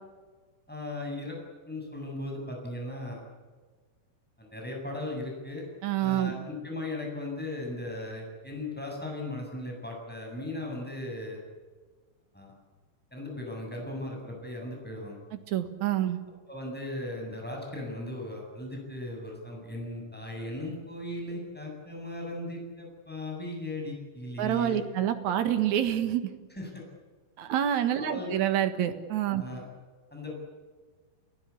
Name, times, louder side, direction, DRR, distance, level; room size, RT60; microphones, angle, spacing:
voice 1, 0.7-1.4 1.7-3.2 4.4-5.6 6.0-11.4 12.3-12.5 13.1-15.2 16.5-24.8 26.5-26.9 28.0-28.4 29.3-29.6 30.1-30.4, left 1 dB, ahead, -1 dB, 7.4 m, -37 dB
voice 2, 5.8-6.3 15.5-16.2 24.4-26.3 27.4-29.4, right 11 dB, 55° right, 8 dB, 2.3 m, -27 dB
30.0 x 17.0 x 8.5 m, 1.4 s
omnidirectional pair, 4.9 m